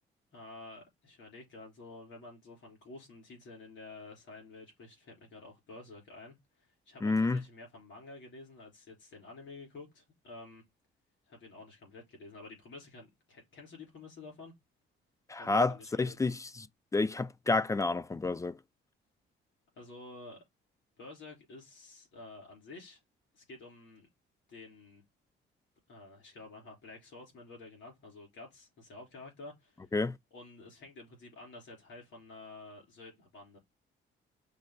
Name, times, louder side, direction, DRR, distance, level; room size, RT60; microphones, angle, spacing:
voice 1, 0.3-6.4 6.6-10.6 11.3-14.5 15.4-16.2 19.8-20.4 21.0-23.0 23.3-24.1 24.5-25.0 25.9-29.9 30.3-33.6, left 3 dB, 75° left, 3.7 m, -50 dB
voice 2, 7.0-7.4 15.3-16.7 16.9-18.6 29.9-30.2, left 3 dB, 15° left, 0.3 m, -29 dB
6.4 x 2.2 x 3.8 m
cardioid pair, 90°, 20 cm